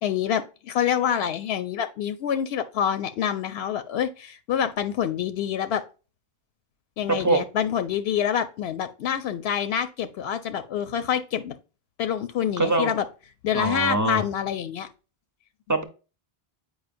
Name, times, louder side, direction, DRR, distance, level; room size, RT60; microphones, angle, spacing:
voice 1, 0.0-5.8 7.0-11.6 12.0-13.0 13.4-14.9, left 9 dB, 85° left, 0.8 m, -26 dB
voice 2, 12.6-12.9 13.5-14.2 15.7-15.8, right 2 dB, 20° right, 0.7 m, -23 dB
8.0 x 5.1 x 2.5 m
omnidirectional pair, 1.0 m